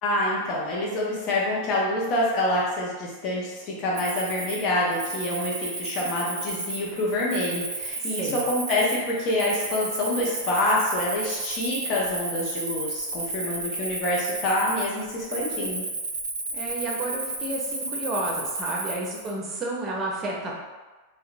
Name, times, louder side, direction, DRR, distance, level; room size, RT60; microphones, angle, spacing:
voice 1, 0.0-15.8, left 1 dB, 45° left, -4 dB, 0.6 m, -26 dB
Cricket, 3.9-19.3, right 2 dB, 80° right, 0.5 m, -33 dB
voice 2, 8.0-8.4 16.5-20.6, right 2 dB, 30° right, -2 dB, 0.6 m, -31 dB
2.7 x 2.1 x 2.5 m, 1.2 s
hypercardioid pair, 95°, 0 cm